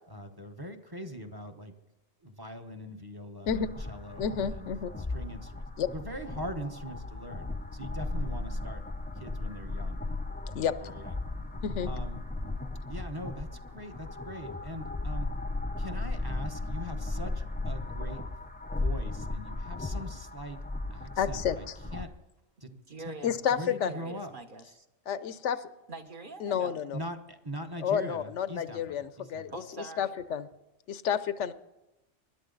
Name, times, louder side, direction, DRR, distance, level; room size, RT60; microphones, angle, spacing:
voice 1, 0.1-1.7 2.2-4.7 5.1-5.6 5.9-8.8 9.2-10.0 10.5-11.2 11.8-12.2 12.9-15.3 15.8-18.4 18.8-20.6 20.9-21.6 21.9-22.1 22.6-22.7 23.1-23.2 23.5-24.3 26.9-29.4, equal, 20° right, 5 dB, 1.0 m, -42 dB
sound 1, 3.5-22.0, left 2 dB, 10° left, 0.6 m, -36 dB
voice 2, 4.2-4.9 5.8-5.9 10.5-10.7 11.6-11.9 21.2-21.8 23.2-24.0 25.1-25.7 26.4-27.0 27.8-29.5 29.8-30.5 30.9-31.5, left 8 dB, 80° left, 14 dB, 1.0 m, -30 dB
voice 3, 22.7-23.3 23.7-24.8 25.9-26.8 29.5-30.2, right 3 dB, 45° right, 5 dB, 1.4 m, -44 dB
20.5 x 11.5 x 4.0 m, 0.97 s
omnidirectional pair, 1.2 m